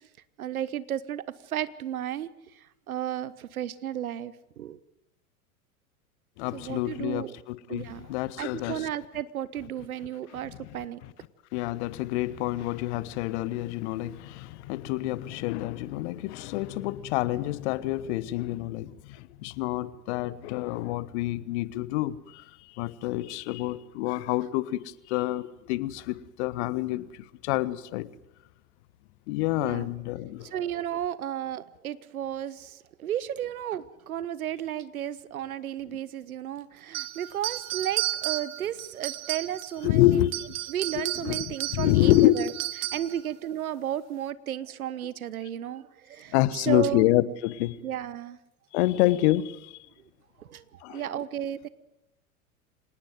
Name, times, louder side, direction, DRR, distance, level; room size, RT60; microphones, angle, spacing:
voice 1, 0.4-2.3 2.9-4.8 6.5-7.3 7.7-11.0 29.6-29.9 30.4-40.2 40.7-42.5 42.9-47.1 47.8-48.4 50.4-51.7, right 11 dB, 70° right, 1.3 m, -33 dB
voice 2, 6.4-8.9 10.4-10.8 11.5-22.4 22.8-27.0 27.4-28.1 29.3-30.5 39.8-40.5 40.9-42.3 46.3-47.8 48.7-49.8 50.8-51.0, left 16 dB, 50° left, 1.2 m, -27 dB
sound 1, 36.9-39.8 40.2-43.2, right 16 dB, 35° right, 1.5 m, -33 dB
26.0 x 19.0 x 7.9 m
figure-of-eight pair, 90°, 44 cm